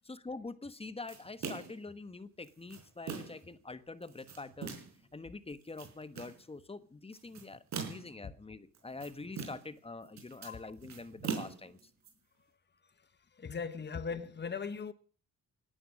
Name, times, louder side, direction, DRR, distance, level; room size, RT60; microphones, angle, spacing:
voice 1, 0.0-4.8 5.1-11.8, left 3 dB, 20° left, 1.3 m, -45 dB
sound 1, 1.1-1.8 2.4-3.5 4.0-5.0 5.5-6.4 7.1-8.2 8.7-9.8 10.0-12.1, right 6 dB, 65° right, 4.9 m, -42 dB
voice 2, 13.4-14.9, left 5 dB, 35° left, 1.6 m, -39 dB
18.5 x 11.5 x 6.4 m
cardioid pair, 90°, 30 cm